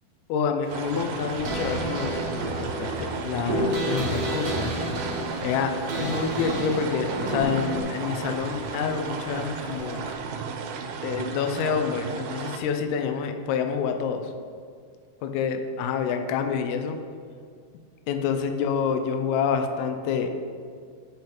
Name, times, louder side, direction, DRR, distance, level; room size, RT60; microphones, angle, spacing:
voice 1, 0.3-4.8 5.4-5.7 6.0-10.0 11.0-14.3 15.2-17.0 18.1-20.4, left 6 dB, 90° left, 6 dB, 2.6 m, -28 dB
sound 1, 0.6-10.2, right 1 dB, 45° right, 1.7 m, -43 dB
sound 2, 0.7-12.6, right 5 dB, 85° right, 2.5 m, -34 dB
sound 3, 1.3-7.8, right 1 dB, 60° right, 2.2 m, -30 dB
10.5 x 3.8 x 4.4 m, 2.1 s
omnidirectional pair, 4.5 m